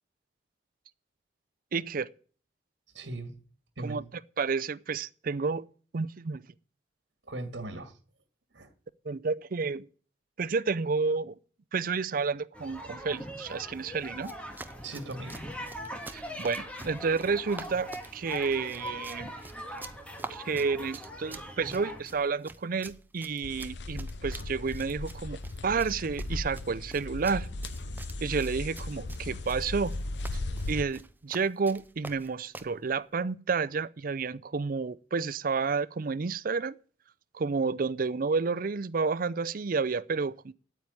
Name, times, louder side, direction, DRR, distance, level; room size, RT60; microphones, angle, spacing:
voice 1, 1.7-2.1 3.8-4.0 4.4-5.7 5.9-6.4 9.1-9.9 10.4-11.3 11.7-14.3 16.1-19.3 20.3-25.4 25.6-27.5 28.2-30.0 30.3-30.4 30.7-36.7 37.3-40.5, right 4 dB, 50° right, 0.5 m, -30 dB
voice 2, 2.9-3.4 3.8-4.1 7.2-8.0 8.5-8.7 14.8-15.4, right 2 dB, 70° right, 2.1 m, -38 dB
sound 1, 12.5-22.0, equal, 5° left, 1.7 m, -42 dB
Run, 14.2-32.8, right 2 dB, 10° right, 0.7 m, -48 dB
sound 2, 23.4-30.8, left 2 dB, 70° left, 0.8 m, -37 dB
9.2 x 8.6 x 9.4 m
head